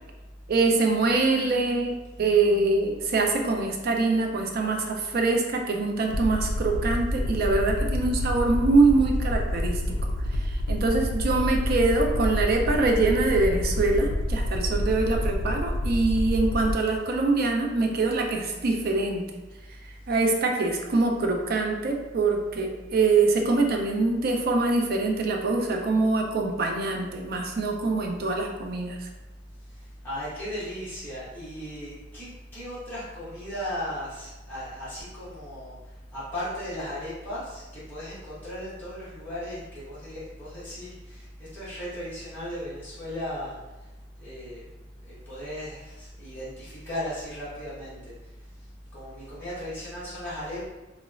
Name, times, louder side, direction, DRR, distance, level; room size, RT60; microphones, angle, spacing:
voice 1, 0.5-10.0 10.3-19.3 19.8-29.1, right 3 dB, 55° right, 2 dB, 0.4 m, -24 dB
Aircraft, 6.1-16.8, left 1 dB, 90° left, 0.4 m, -28 dB
voice 2, 29.7-43.6 44.2-44.6 45.0-48.1 48.9-50.7, equal, 10° left, -12 dB, 1.1 m, -36 dB
3.9 x 2.0 x 2.4 m, 1.1 s
head